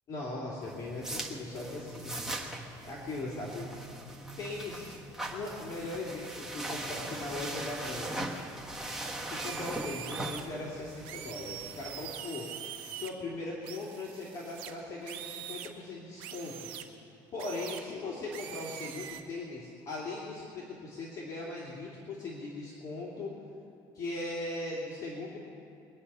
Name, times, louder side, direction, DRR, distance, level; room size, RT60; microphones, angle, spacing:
voice 1, 0.1-2.1 2.8-3.7 4.4-4.9 5.3-8.2 9.3-12.5 12.9-16.7 17.3-23.3 23.9-25.4, left 2 dB, 40° left, -5 dB, 2.8 m, -39 dB
sound 1, 0.6-12.0, right 1 dB, 5° right, 1.3 m, -40 dB
sound 2, 9.4-10.4 11.0-13.1 13.6-15.7 16.2-16.8 17.4-17.8 18.3-19.2, right 10 dB, 80° right, 1.2 m, -43 dB
23.0 x 9.7 x 5.6 m, 2.6 s
cardioid pair, 140°, 9 cm